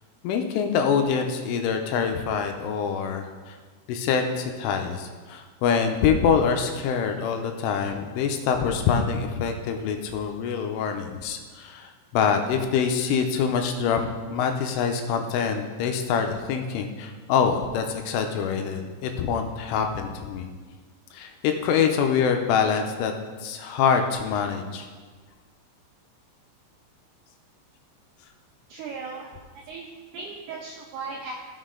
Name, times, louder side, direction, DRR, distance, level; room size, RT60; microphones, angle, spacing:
voice 1, 0.2-3.6 3.9-20.5 21.1-23.1 23.4-24.9, left 6 dB, 85° left, 5 dB, 3.2 m, -25 dB
voice 2, 28.7-29.3 29.7-29.9 30.1-31.3, right 4 dB, 80° right, -1 dB, 2.3 m, -36 dB
16.0 x 6.3 x 3.8 m, 1.4 s
omnidirectional pair, 5.8 m